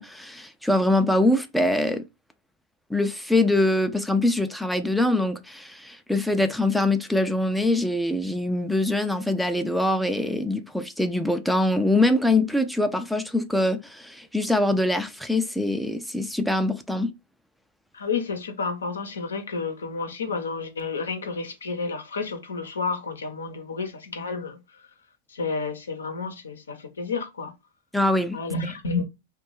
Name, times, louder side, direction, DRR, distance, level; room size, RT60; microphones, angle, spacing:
voice 1, 0.0-2.0 2.9-17.1 27.9-28.4, left 1 dB, ahead, 0.3 m, -23 dB
voice 2, 17.9-24.6 25.3-27.5 28.3-29.0, left 4 dB, 85° left, 0.6 m, -30 dB
2.5 x 2.2 x 3.0 m
hypercardioid pair, 100°, 0 cm